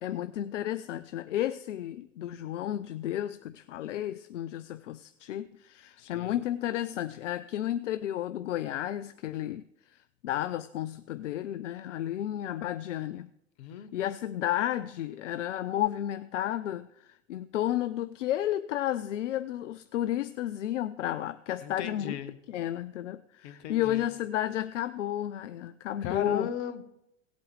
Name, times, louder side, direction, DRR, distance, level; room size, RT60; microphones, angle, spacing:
voice 1, 0.0-9.7 10.2-13.3 13.9-22.2 22.5-26.5, left 12 dB, 80° left, 0.5 m, -32 dB
voice 2, 6.0-6.3 13.6-13.9 21.6-22.3 23.4-24.1 26.0-26.8, left 8 dB, 60° left, 1.2 m, -37 dB
17.5 x 8.2 x 3.2 m
hypercardioid pair, 85°, 37 cm